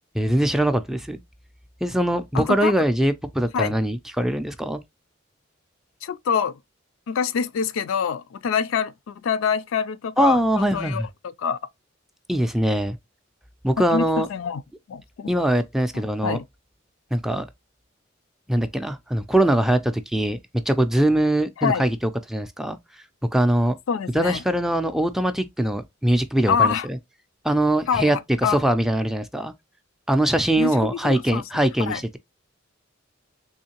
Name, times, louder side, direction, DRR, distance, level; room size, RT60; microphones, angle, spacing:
voice 1, 0.1-1.2 1.8-4.8 10.2-11.1 12.3-13.0 13.6-14.3 15.3-16.4 17.1-17.5 18.5-20.4 20.7-22.0 22.3-22.8 23.3-23.7 24.1-27.0 27.4-29.5 30.1-32.2, right 1 dB, ahead, 0.3 m, -22 dB
voice 2, 2.3-2.7 3.5-3.8 6.0-6.6 7.1-11.0 11.4-11.6 13.9-14.6 14.9-15.3 15.9-16.4 21.6-21.8 23.9-24.4 26.5-26.9 27.9-28.1 28.4-28.6 30.6-30.7 31.0-31.4 31.9-32.0, left 6 dB, 75° left, 0.4 m, -25 dB
3.5 x 3.1 x 2.8 m
head